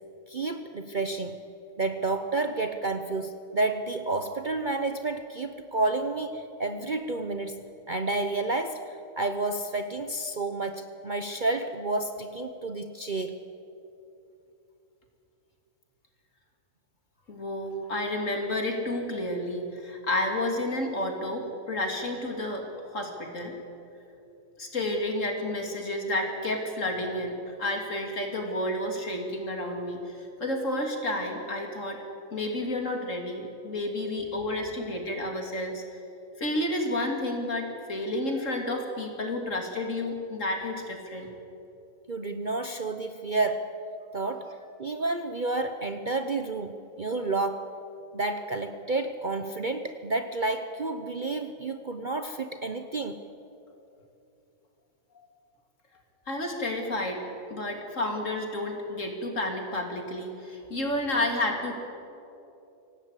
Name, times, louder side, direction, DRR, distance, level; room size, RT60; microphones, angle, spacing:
voice 1, 0.3-1.4 1.8-7.6 7.9-13.4 42.1-43.7 44.1-44.5 44.8-47.7 48.1-53.2, right 2 dB, 40° right, 7 dB, 0.9 m, -30 dB
voice 2, 17.3-23.5 24.6-32.0 32.3-35.8 36.4-41.3 55.1-55.3 56.3-57.2 57.5-61.7, left 1 dB, 55° left, 2 dB, 3.2 m, -31 dB
25.5 x 17.5 x 8.3 m, 2.8 s
omnidirectional pair, 1.6 m